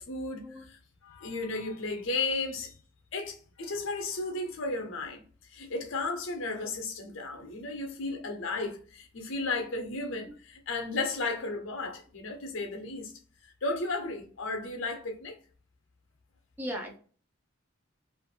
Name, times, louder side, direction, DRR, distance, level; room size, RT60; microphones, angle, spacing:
voice 1, 0.0-2.8 3.1-5.2 5.5-13.1 13.6-15.4, left 3 dB, 60° left, 0.7 m, -34 dB
voice 2, 16.6-17.0, equal, 10° right, 0.5 m, -37 dB
2.5 x 2.5 x 2.7 m
head